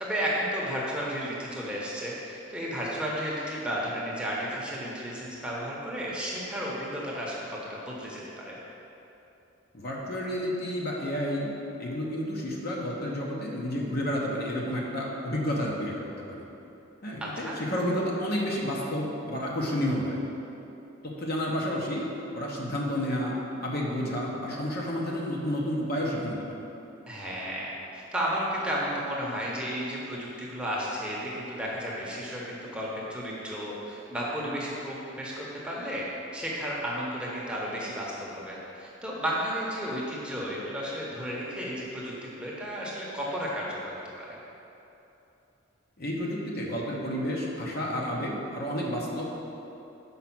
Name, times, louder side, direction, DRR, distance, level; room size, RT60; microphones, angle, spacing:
voice 1, 0.0-8.6 17.2-17.5 27.1-36.1 36.3-44.4, equal, 5° right, -5 dB, 0.9 m, -33 dB
voice 2, 9.7-11.5 11.8-15.9 16.3-16.4 17.0-20.2 21.0-22.1 22.3-26.4 46.0-49.2, equal, 50° left, -3 dB, 1.0 m, -30 dB
5.7 x 4.7 x 6.0 m, 2.9 s
head